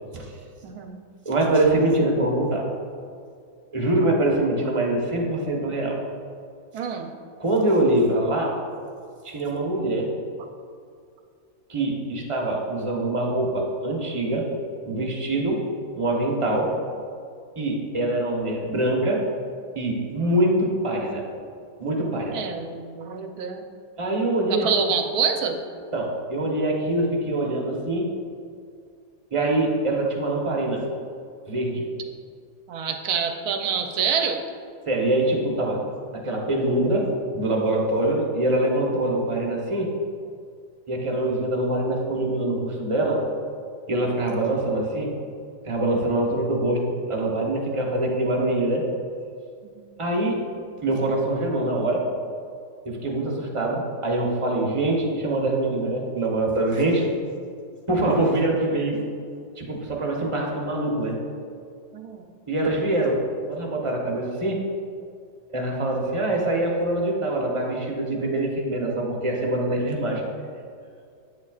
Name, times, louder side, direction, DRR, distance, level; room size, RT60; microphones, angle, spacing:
voice 1, 0.6-1.0 6.7-7.1 22.3-23.7 24.5-25.6 32.7-34.4 49.6-49.8 61.9-62.3, right 6 dB, 70° right, 5 dB, 1.1 m, -27 dB
voice 2, 1.2-2.7 3.7-6.0 7.4-8.6 9.2-10.1 11.7-14.5 14.8-15.6 15.9-16.7 17.6-19.2 19.7-21.2 21.8-22.4 24.0-24.7 25.9-28.1 29.3-30.8 31.5-31.9 34.9-35.8 36.1-39.9 40.9-43.2 43.9-45.2 45.6-48.9 50.0-50.4 50.8-52.1 52.8-57.1 57.9-59.1 59.6-61.2 62.5-63.2 63.5-64.6 65.5-70.3, right 1 dB, 25° right, -2 dB, 0.8 m, -24 dB
9.0 x 7.3 x 2.4 m, 2.3 s
omnidirectional pair, 1.8 m